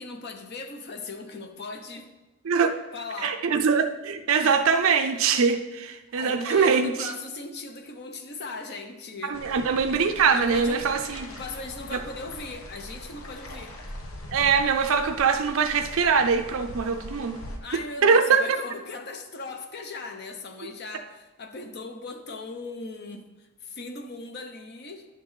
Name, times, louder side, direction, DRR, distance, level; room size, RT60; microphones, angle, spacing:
voice 1, 0.0-2.1 2.9-3.4 6.1-9.4 10.3-10.9 11.3-13.8 17.6-25.1, left 3 dB, 50° left, 6 dB, 0.7 m, -38 dB
voice 2, 3.2-7.1 9.3-11.3 14.3-17.4 18.0-18.4, right 5 dB, 65° right, 6 dB, 0.5 m, -22 dB
sound 1, 9.3-17.6, left 1 dB, 75° left, 1.0 m, -41 dB
10.5 x 5.8 x 3.2 m, 1.1 s
head